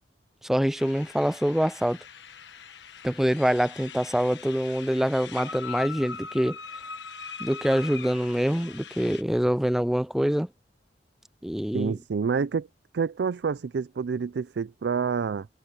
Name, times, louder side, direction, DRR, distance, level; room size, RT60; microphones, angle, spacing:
voice 1, 0.4-2.0 3.0-6.6 7.4-10.5 11.4-12.0, equal, ahead, 0.3 m, -25 dB
sound 1, 0.8-9.2, left 6 dB, 85° left, 1.4 m, -41 dB
voice 2, 11.7-12.7 12.9-15.5, right 5 dB, 70° right, 0.4 m, -28 dB
head